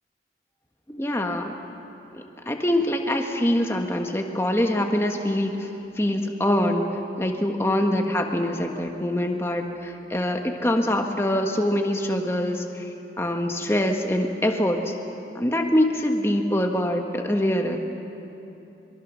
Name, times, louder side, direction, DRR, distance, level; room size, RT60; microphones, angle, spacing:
voice 1, 0.9-1.5 2.1-5.7 6.0-6.9 7.2-12.9 13.2-14.9 15.3-17.8, left 1 dB, 15° left, 3 dB, 1.4 m, -24 dB
25.0 x 23.0 x 6.4 m, 2.9 s
head